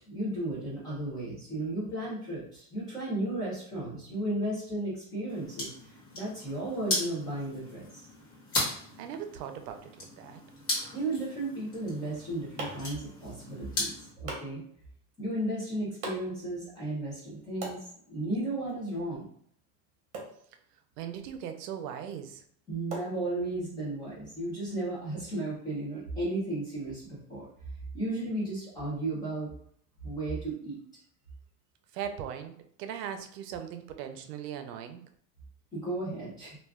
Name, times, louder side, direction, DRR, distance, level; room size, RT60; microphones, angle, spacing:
voice 1, 0.1-8.1 10.9-14.6 15.2-17.8 18.1-19.2 22.7-27.5 27.9-29.5 30.0-30.8 35.7-36.6, right 1 dB, 10° left, -8 dB, 0.4 m, -34 dB
sound 1, 5.3-14.1, left 1 dB, 30° left, 1.1 m, -37 dB
voice 2, 8.7-10.4 21.0-22.4 31.9-32.5 32.8-35.0, right 9 dB, 90° right, 7 dB, 0.6 m, -39 dB
sound 2, 11.9-23.8, right 2 dB, 40° right, 0.9 m, -47 dB
2.4 x 2.3 x 3.4 m, 0.64 s
supercardioid pair, 165°, 46 cm